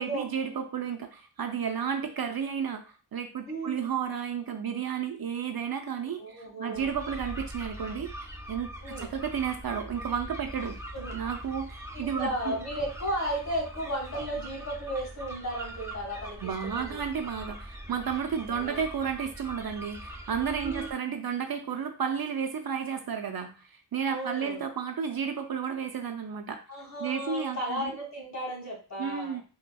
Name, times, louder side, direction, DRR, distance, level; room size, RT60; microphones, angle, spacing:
voice 1, 0.0-8.1 8.5-10.8 11.1-12.6 16.4-26.6 27.0-27.9 29.0-29.4, right 7 dB, 60° right, 6 dB, 0.5 m, -32 dB
voice 2, 3.5-3.8 6.2-6.9 8.8-9.1 10.9-11.1 11.9-17.0 17.4-17.5 18.5-18.8 20.6-20.9 24.1-24.7 26.7-29.4, equal, 40° left, -3 dB, 1.6 m, -35 dB
sound 1, 6.8-20.9, right 1 dB, 5° right, 0.6 m, -42 dB
4.2 x 2.2 x 2.2 m, 0.36 s
wide cardioid pair, 55°, 42 cm